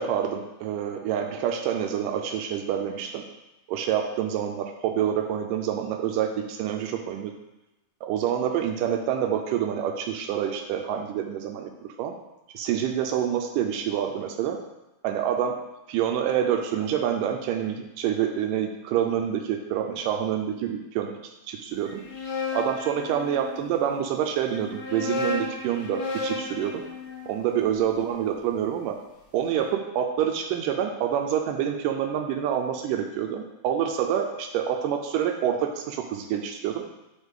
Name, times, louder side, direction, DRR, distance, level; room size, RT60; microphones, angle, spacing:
voice 1, 0.0-3.2 3.7-7.3 8.0-12.1 12.5-14.6 15.0-15.5 15.9-21.1 21.5-22.0 22.5-26.8 27.3-29.0 29.3-36.8, right 9 dB, 80° right, 4 dB, 2.1 m, -27 dB
sound 1, 21.9-23.8 24.6-28.7, left 3 dB, 80° left, 3.3 m, -34 dB
9.6 x 4.1 x 3.6 m, 0.96 s
omnidirectional pair, 3.9 m